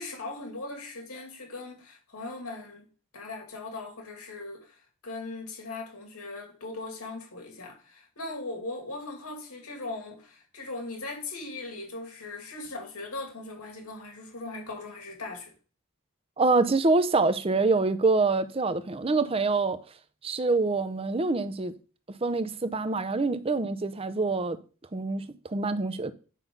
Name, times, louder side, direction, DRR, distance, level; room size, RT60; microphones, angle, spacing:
voice 1, 0.0-2.9 3.1-4.8 5.0-15.5, left 2 dB, 80° left, 2.5 m, -39 dB
voice 2, 16.4-19.8 20.2-21.7 22.2-24.6 24.9-26.1, right 3 dB, 25° right, 0.5 m, -25 dB
9.1 x 5.7 x 3.8 m
head